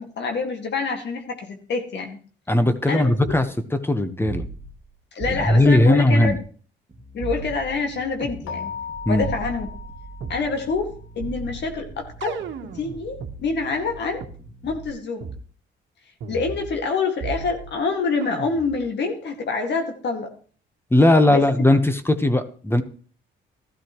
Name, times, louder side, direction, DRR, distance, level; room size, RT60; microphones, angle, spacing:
voice 1, 0.0-2.2 2.9-3.4 5.1-6.3 7.1-8.7 9.1-9.7 10.3-12.4 12.7-14.2 14.6-15.2 16.3-20.3 21.3-21.5, left 4 dB, 60° left, 3 dB, 2.0 m, -26 dB
voice 2, 2.5-4.4 5.3-6.4 9.1-9.3 20.9-22.8, left 1 dB, 10° left, 10 dB, 1.1 m, -18 dB
sound 1, 3.2-3.4 4.2-4.9 5.2-6.4 7.2-8.4 9.2-10.4 11.2-13.4 14.2-14.3 15.2-15.4 16.2-16.9 17.2-17.8 18.2-18.8, right 5 dB, 70° right, 1.4 m, -35 dB
sound 2, 6.9-14.9, right 2 dB, 25° right, 2.2 m, -44 dB
Keyboard (musical), 8.5-10.9, left 7 dB, 85° left, 1.2 m, -37 dB
14.0 x 12.5 x 3.1 m, 0.42 s
cardioid pair, 90°, 20 cm